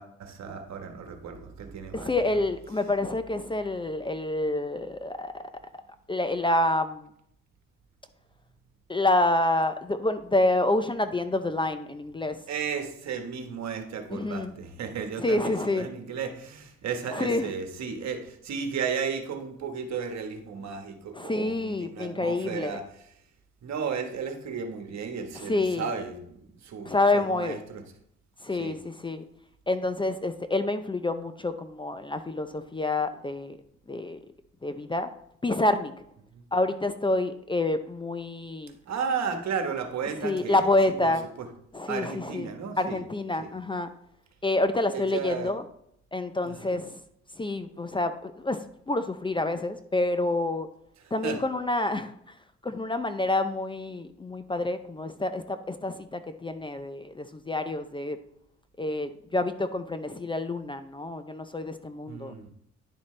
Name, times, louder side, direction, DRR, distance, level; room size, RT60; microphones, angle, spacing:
voice 1, 0.0-2.1 12.5-22.8 23.6-27.8 28.5-28.8 36.3-36.4 38.9-40.7 41.0-41.1 41.4-41.5 41.9-43.0 43.4-43.5 44.9-45.5 46.4-46.8 51.2-51.4 62.1-62.5, right 6 dB, 65° right, 6 dB, 1.4 m, -34 dB
voice 2, 1.9-5.4 6.1-7.1 8.9-12.4 14.1-14.5 15.2-15.9 17.1-17.5 21.1-22.8 25.3-25.9 26.8-27.6 28.4-29.2 29.7-33.6 33.9-34.3 34.6-35.1 35.4-35.9 36.5-38.8 40.2-41.2 41.7-43.9 44.4-45.6 46.1-47.0 47.3-50.7 51.1-52.3 52.6-58.2 58.8-62.3, left 2 dB, 15° left, 10 dB, 0.5 m, -28 dB
10.5 x 7.1 x 3.3 m, 0.71 s
cardioid pair, 90°, 30 cm